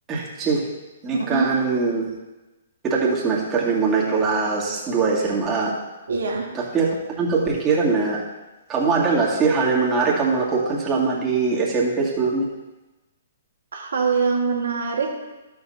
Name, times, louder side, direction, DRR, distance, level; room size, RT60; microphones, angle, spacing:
voice 1, 0.1-0.7 1.0-2.1 2.8-5.8 6.5-8.2 8.7-12.5, right 4 dB, 20° right, -4 dB, 2.2 m, -22 dB
voice 2, 1.1-1.5 6.1-6.5 13.7-15.3, right 5 dB, 70° right, 0 dB, 1.7 m, -24 dB
12.5 x 7.1 x 2.8 m, 1.1 s
figure-of-eight pair, 125°, 0 cm